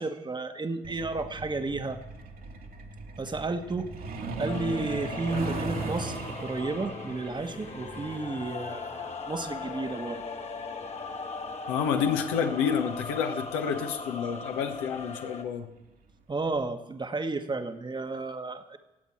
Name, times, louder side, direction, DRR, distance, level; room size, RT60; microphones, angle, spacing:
voice 1, 0.0-2.0 3.2-3.9 4.4-6.1 6.4-10.2 16.3-18.8, right 3 dB, 25° right, 8 dB, 1.3 m, -32 dB
Truck, 0.8-13.1 14.4-14.5 14.9-15.1 15.5-15.8 16.1-16.2 16.7-16.8, right 3 dB, 55° right, 1.7 m, -39 dB
sound 1, 4.5-15.4, left 4 dB, 35° left, 1.5 m, -39 dB
voice 2, 11.7-15.7, left 7 dB, 70° left, 6 dB, 1.1 m, -29 dB
24.5 x 8.3 x 4.5 m, 1.0 s
figure-of-eight pair, 45°, 19 cm